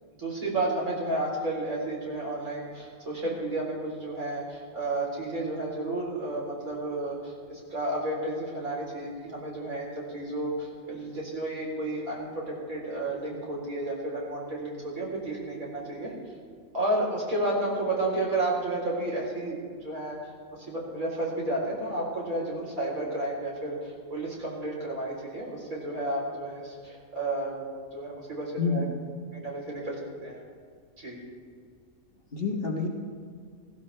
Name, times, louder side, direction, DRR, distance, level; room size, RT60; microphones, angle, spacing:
voice 1, 0.2-16.1 16.7-20.2 20.7-27.6 27.9-28.9 29.3-29.9 30.2-30.4 31.0-31.2, right 2 dB, 75° right, -3 dB, 4.2 m, -32 dB
voice 2, 28.6-29.0 32.3-32.9, left 4 dB, 40° left, 0 dB, 1.5 m, -28 dB
16.0 x 15.5 x 3.3 m, 2.1 s
omnidirectional pair, 1.5 m